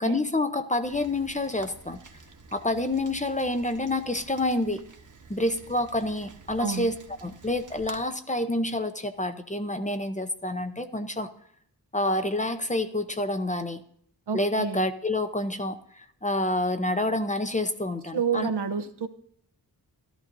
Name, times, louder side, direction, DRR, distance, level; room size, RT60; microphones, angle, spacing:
voice 1, 0.0-2.0 2.5-4.8 5.3-6.9 7.2-11.3 11.9-13.8 14.3-18.5, left 1 dB, 20° left, 8 dB, 0.7 m, -28 dB
Rain, 0.8-8.0, right 4 dB, 50° right, 1.2 m, -49 dB
voice 2, 14.3-14.9 18.1-19.1, right 6 dB, 80° right, 7 dB, 0.9 m, -29 dB
14.0 x 12.5 x 2.7 m, 0.64 s
wide cardioid pair, 100°, 40 cm